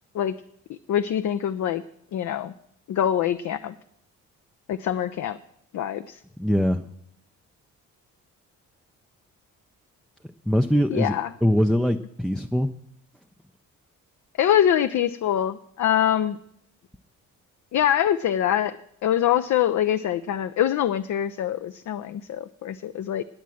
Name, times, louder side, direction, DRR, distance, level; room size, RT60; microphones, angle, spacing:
voice 1, 0.9-1.8 2.1-2.5 2.9-3.7 4.7-5.4 5.7-6.2 10.9-11.3 14.4-16.4 17.7-18.7 19.0-23.2, left 10 dB, 45° left, 11 dB, 0.5 m, -24 dB
voice 2, 6.4-6.8 10.5-11.2 11.4-12.7, equal, ahead, 5 dB, 0.5 m, -22 dB
9.1 x 8.7 x 7.7 m, 0.75 s
hypercardioid pair, 45°, 41 cm